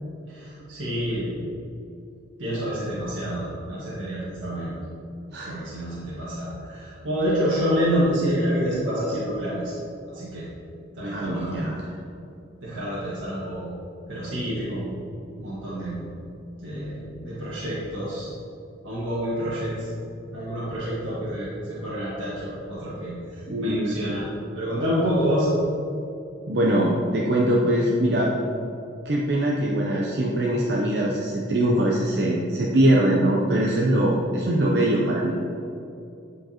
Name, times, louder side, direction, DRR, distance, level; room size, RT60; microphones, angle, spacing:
voice 1, 0.3-1.4 2.4-4.7 5.4-9.7 10.1-10.5 10.9-11.6 11.8-11.9 12.6-13.7 14.1-14.9 15.4-16.1 16.6-18.3 18.8-19.9 20.3-24.3 24.5-25.5, equal, 85° right, -9 dB, 1.7 m, -28 dB
voice 2, 11.1-11.9 23.5-24.2 26.5-28.3 29.0-35.3, right 1 dB, 55° right, -3 dB, 0.6 m, -22 dB
10.0 x 5.1 x 2.9 m, 2.8 s
head